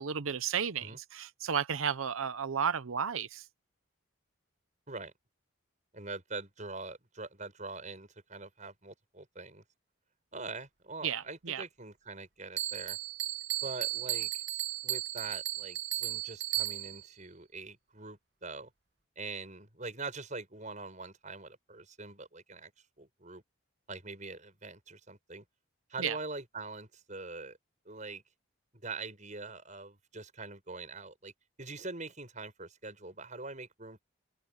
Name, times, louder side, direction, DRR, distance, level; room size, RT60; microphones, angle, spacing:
voice 1, 0.0-3.5 11.0-11.6 26.0-26.2, right 7 dB, 80° right, 0.8 m, -33 dB
voice 2, 5.9-9.6 10.3-13.0 13.6-14.4 14.8-18.7 19.2-22.7 23.0-23.4 23.9-25.4 25.9-27.6 27.8-28.2 28.7-31.3 31.6-34.0, right 3 dB, 35° right, 6.4 m, -43 dB
Bell, 12.6-17.1, right 15 dB, 55° right, 1.9 m, -35 dB
head